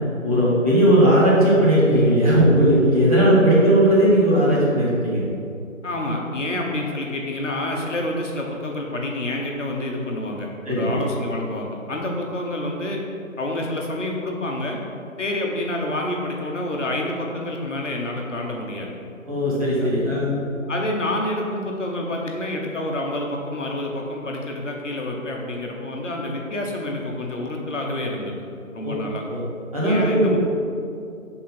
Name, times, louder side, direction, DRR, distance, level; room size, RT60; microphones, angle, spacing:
voice 1, 0.2-5.2 10.6-11.0 19.3-20.4 28.8-28.9 29.3-29.4 29.7-30.4, right 1 dB, 25° right, -9 dB, 1.3 m, -17 dB
voice 2, 5.8-13.0 13.4-14.8 15.2-18.9 19.7-19.9 20.7-28.3 28.7-29.2 29.8-30.4, left 1 dB, 60° left, 0 dB, 1.0 m, -28 dB
6.0 x 3.8 x 4.3 m, 2.5 s
figure-of-eight pair, 170°, 41 cm